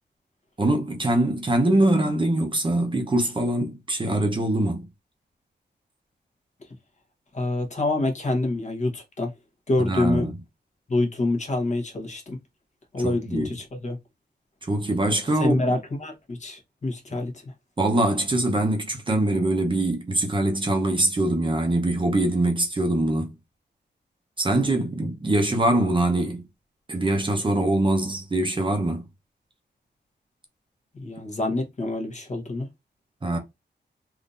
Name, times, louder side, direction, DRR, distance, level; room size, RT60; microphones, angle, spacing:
voice 1, 0.6-4.9 9.8-10.4 13.0-13.5 14.6-15.6 17.8-23.3 24.4-26.4 26.9-29.0 33.2-33.4, right 1 dB, 25° right, 0.8 m, -23 dB
voice 2, 7.3-9.3 9.7-10.3 10.9-12.4 12.9-14.0 15.4-17.5 30.9-32.7, left 2 dB, 40° left, 1.2 m, -26 dB
3.6 x 2.7 x 2.5 m
wide cardioid pair, 125°, 19 cm